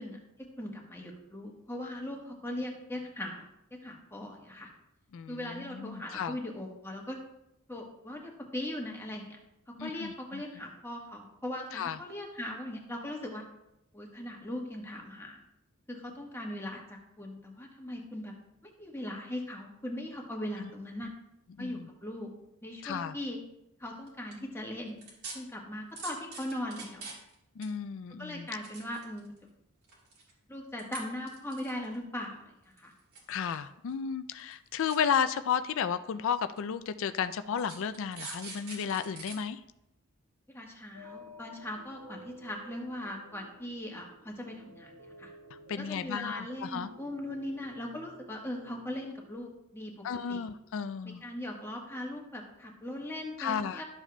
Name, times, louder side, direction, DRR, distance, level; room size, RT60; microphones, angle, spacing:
voice 1, 0.0-4.7 5.3-7.2 7.7-9.4 9.7-13.4 13.9-15.4 15.9-18.3 18.6-21.1 21.6-22.3 22.6-23.4 23.8-25.0 25.3-27.1 28.2-29.3 30.5-32.9 40.5-44.9 45.2-45.3 45.8-49.9 50.3-50.4 51.0-53.8, left 1 dB, 10° left, 0 dB, 1.2 m, -39 dB
voice 2, 5.1-6.4 9.8-10.4 11.7-12.0 20.6-20.7 21.0-21.1 21.6-21.9 22.8-23.1 27.6-28.5 33.3-39.6 45.7-46.9 50.0-51.2 53.4-53.8, left 7 dB, 60° left, 11 dB, 0.3 m, -33 dB
sound 1, 24.1-24.3 25.0-25.3 26.0-27.3 27.6-27.7 28.4-29.4 29.8-30.3 30.8-31.0 31.3-32.0 32.8-33.6 33.9-34.0 34.4-34.5 34.9-35.0 35.8-35.9 36.6-36.7 37.6-39.4 39.8-39.9, right 3 dB, 90° right, 2.6 m, -43 dB
sound 2, 40.9-49.4, equal, 65° right, 1.3 m, -53 dB
12.5 x 7.2 x 2.2 m, 0.86 s
head